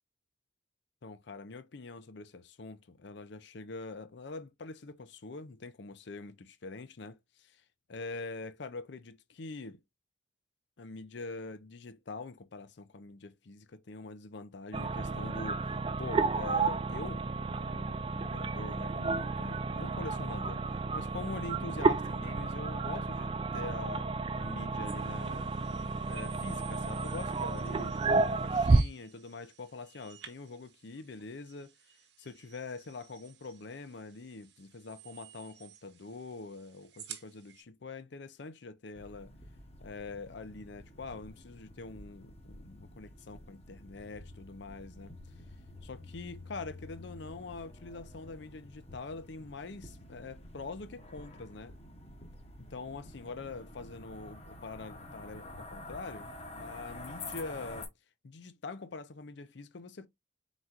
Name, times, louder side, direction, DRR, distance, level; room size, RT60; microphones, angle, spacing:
voice 1, 1.0-7.6 7.9-9.8 10.8-20.6 20.9-25.5 26.1-31.7 32.2-39.3 39.8-45.1 45.8-51.7 52.6-57.9 58.2-60.1, left 3 dB, 65° left, 0.6 m, -44 dB
sound 1, 14.7-28.8, right 3 dB, 25° right, 0.3 m, -31 dB
sound 2, 24.8-37.6, right 9 dB, 60° right, 1.0 m, -54 dB
sound 3, 38.9-57.9, left 2 dB, 30° left, 1.0 m, -49 dB
4.5 x 4.0 x 2.4 m
head